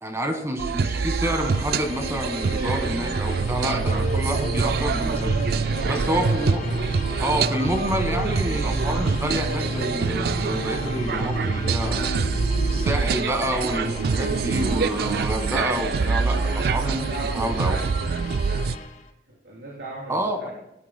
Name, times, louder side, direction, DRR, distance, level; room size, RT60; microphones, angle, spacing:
voice 1, 0.0-5.3 5.8-6.6 7.2-12.1 12.7-17.1 17.3-17.8 20.1-20.4, equal, 15° right, 4 dB, 1.5 m, -28 dB
sound 1, 0.6-18.8, right 5 dB, 60° right, 0.3 m, -25 dB
sound 2, 1.2-19.1, left 3 dB, 45° left, 1.1 m, -40 dB
sound 3, 3.6-12.9, right 1 dB, 90° left, 3.4 m, -31 dB
voice 2, 5.7-6.5 16.3-17.9 18.5-18.7 19.3-20.5, right 2 dB, 85° right, -6 dB, 3.6 m, -37 dB
18.5 x 12.0 x 2.2 m, 0.86 s
head